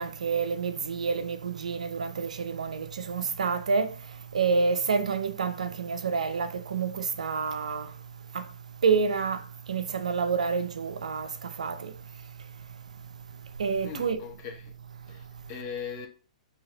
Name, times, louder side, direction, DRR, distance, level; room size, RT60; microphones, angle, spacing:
voice 1, 0.0-3.9 4.3-7.9 8.3-8.4 8.8-9.4 9.7-11.3 11.6-11.9 13.6-14.2, right 5 dB, 75° right, 0.5 m, -28 dB
voice 2, 13.8-14.7 15.1-16.1, left 7 dB, 40° left, 0.9 m, -39 dB
4.0 x 2.9 x 3.8 m
hypercardioid pair, 115°, 4 cm